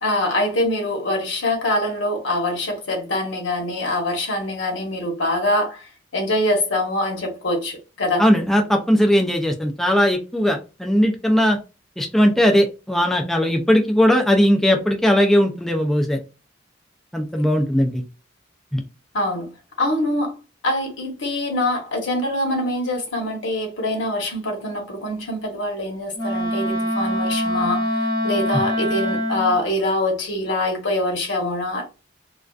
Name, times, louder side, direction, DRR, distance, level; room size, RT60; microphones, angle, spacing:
voice 1, 0.0-8.2 19.1-19.5 19.8-20.4 20.6-31.9, left 1 dB, 75° left, 0.9 m, -24 dB
voice 2, 8.2-11.6 12.0-16.2 17.1-18.0 18.7-18.8, equal, ahead, 0.3 m, -18 dB
Wind instrument woodwind instrument, 26.1-29.6, equal, 25° left, 0.7 m, -24 dB
2.4 x 2.3 x 2.3 m
head